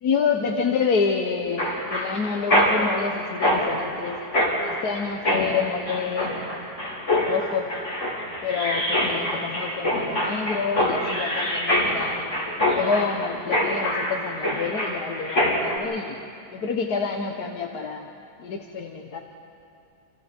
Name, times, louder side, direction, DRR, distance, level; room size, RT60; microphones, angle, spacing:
voice 1, 0.0-4.2 4.6-6.4 7.2-7.7 8.4-12.3 12.7-16.2 16.5-18.1 18.4-19.2, left 5 dB, 70° left, 2 dB, 1.7 m, -28 dB
Mechanisms, 1.6-15.8, left 1 dB, 45° left, 4.0 m, -25 dB
28.5 x 28.0 x 4.5 m, 2.5 s
omnidirectional pair, 1.7 m